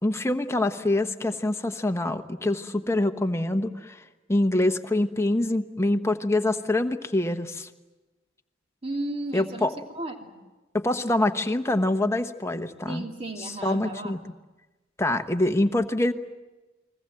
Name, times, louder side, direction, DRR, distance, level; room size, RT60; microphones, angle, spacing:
voice 1, 0.0-4.0 4.3-7.7 9.3-9.7 10.7-13.0 13.6-14.2 15.0-16.1, left 1 dB, 15° left, 8 dB, 1.1 m, -25 dB
voice 2, 8.8-9.7 9.9-10.4 12.9-14.2, right 2 dB, 30° right, 3 dB, 2.8 m, -34 dB
30.0 x 21.5 x 7.8 m, 1.1 s
head